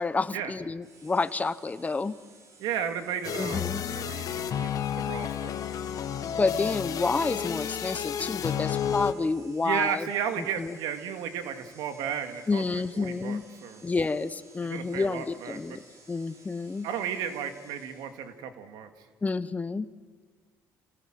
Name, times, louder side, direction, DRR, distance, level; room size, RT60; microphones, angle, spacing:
voice 1, 0.0-2.2 3.4-3.8 6.3-10.1 10.4-10.8 12.5-13.4 13.8-16.9 19.2-19.9, left 3 dB, 20° left, 14 dB, 1.1 m, -29 dB
sound 1, 0.8-18.4, right 3 dB, 50° right, 6.6 m, -57 dB
voice 2, 2.6-4.7 4.9-5.6 9.6-12.6 13.0-13.8 14.6-15.8 16.8-18.9, right 8 dB, 80° right, 8 dB, 2.1 m, -33 dB
sound 2, 3.2-9.1, left 9 dB, 55° left, 1.5 m, -31 dB
28.5 x 18.5 x 7.7 m, 1.5 s
cardioid pair, 90°, 7 cm